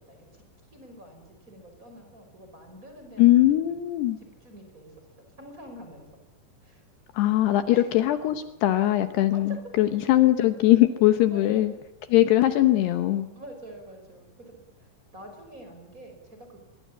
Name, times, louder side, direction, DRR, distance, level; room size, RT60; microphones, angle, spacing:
voice 1, 0.1-3.7 4.2-5.1 5.4-6.2 6.6-6.8 7.7-7.9 9.3-9.6 11.3-11.6 12.1-12.2 13.3-16.6, right 1 dB, 20° right, 4 dB, 5.5 m, -46 dB
voice 2, 3.2-4.2 7.1-11.7 12.1-13.3, left 14 dB, 75° left, 9 dB, 2.9 m, -21 dB
24.0 x 23.5 x 8.6 m, 0.88 s
omnidirectional pair, 5.1 m